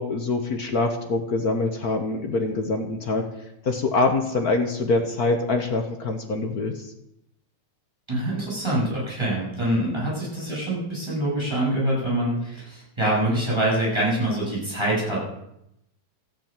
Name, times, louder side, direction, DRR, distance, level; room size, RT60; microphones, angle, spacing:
voice 1, 0.0-3.2 3.6-6.9, left 3 dB, 55° left, 4 dB, 1.0 m, -24 dB
voice 2, 8.1-15.2, right 1 dB, 10° right, -6 dB, 8.0 m, -25 dB
13.5 x 8.6 x 9.0 m, 0.81 s
omnidirectional pair, 3.5 m